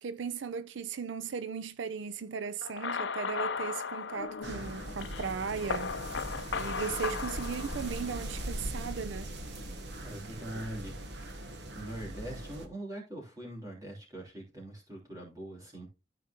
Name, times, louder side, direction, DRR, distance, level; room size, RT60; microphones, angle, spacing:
voice 1, 0.0-5.9 6.5-9.3 10.5-10.6, right 6 dB, 80° right, 0.5 m, -37 dB
sound 1, 2.6-8.4, left 5 dB, 70° left, 0.6 m, -37 dB
sound 2, 4.4-12.7, right 1 dB, 60° right, 1.2 m, -40 dB
voice 2, 10.0-11.0 11.3-15.9, right 1 dB, 20° right, 3.1 m, -43 dB
13.0 x 4.7 x 2.9 m
head